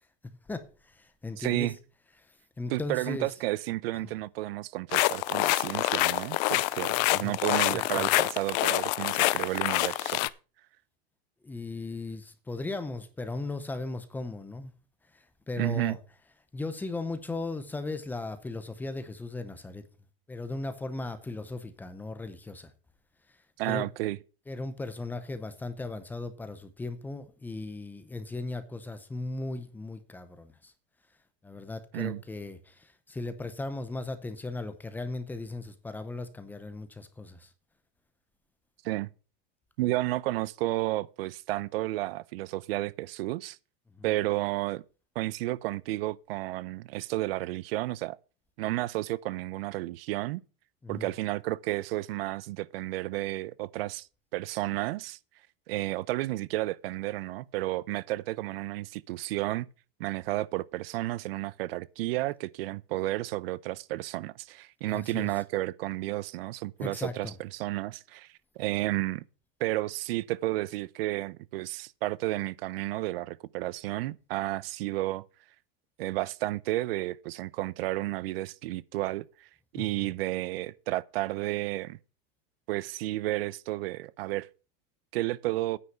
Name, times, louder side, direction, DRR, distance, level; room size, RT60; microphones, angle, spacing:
voice 1, 0.5-1.7 2.6-3.3 4.0-4.1 7.0-7.4 7.7-8.0 11.4-14.7 15.1-16.0 16.5-19.8 20.3-22.7 23.6-23.9 24.5-30.7 31.4-37.5 43.9-44.1 50.8-51.1 64.9-65.3 66.8-67.3 79.7-80.1, left 2 dB, 5° left, 0.7 m, -37 dB
voice 2, 1.4-1.8 2.7-10.3 15.6-16.0 23.6-24.2 31.9-32.2 38.8-39.1 39.8-43.6 44.0-44.8 45.2-48.2 48.6-50.4 50.9-54.1 54.3-55.2 55.7-59.7 60.0-68.3 68.6-69.2 69.6-75.2 76.0-79.5 79.7-82.0 82.7-84.5 85.1-85.8, right 18 dB, 80° right, 0.6 m, -32 dB
sound 1, 4.9-10.3, left 20 dB, 45° left, 0.5 m, -26 dB
9.6 x 5.6 x 8.2 m
supercardioid pair, 170°, 29 cm